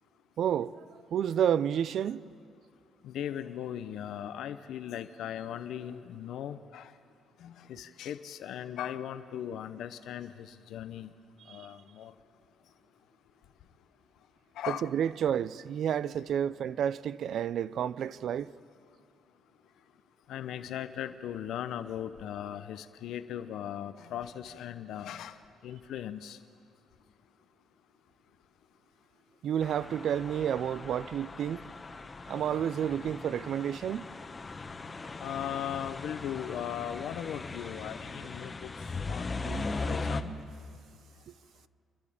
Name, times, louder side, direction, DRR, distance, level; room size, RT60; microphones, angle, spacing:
voice 1, 0.4-0.8 1.1-2.2 11.5-11.6 14.7-18.5 29.4-31.6 32.3-34.1, right 9 dB, 70° right, 0.5 m, -30 dB
voice 2, 3.0-6.9 7.4-11.1 11.5-12.1 14.6-14.9 16.0-16.3 20.3-25.4 25.6-26.4 35.2-40.3, left 10 dB, 80° left, 0.7 m, -38 dB
sound 1, 29.6-40.2, left 3 dB, 30° left, 1.1 m, -39 dB
28.5 x 11.5 x 8.6 m
cardioid pair, 90°, 0 cm